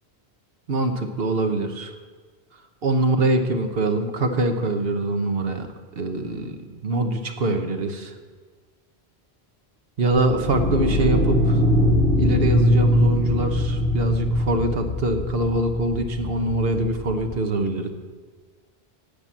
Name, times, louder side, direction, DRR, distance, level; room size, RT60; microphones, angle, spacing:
voice 1, 0.7-1.9 2.8-8.1 10.0-11.6 12.2-17.9, right 2 dB, 65° right, 6 dB, 1.2 m, -24 dB
sound 1, 10.2-17.4, equal, 65° left, 2.7 m, -22 dB
10.5 x 8.7 x 7.5 m, 1.5 s
omnidirectional pair, 1.1 m